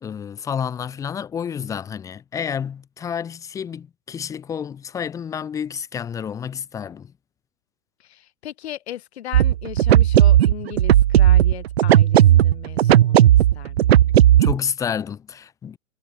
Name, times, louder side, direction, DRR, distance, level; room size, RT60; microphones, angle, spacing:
voice 1, 0.0-7.1 14.4-15.8, left 8 dB, 5° left, 1.5 m, -30 dB
voice 2, 8.0-13.3 13.5-14.1, left 12 dB, 45° left, 6.7 m, -37 dB
sound 1, 9.3-14.6, right 12 dB, 45° right, 1.5 m, -15 dB
hypercardioid pair, 175°, 43 cm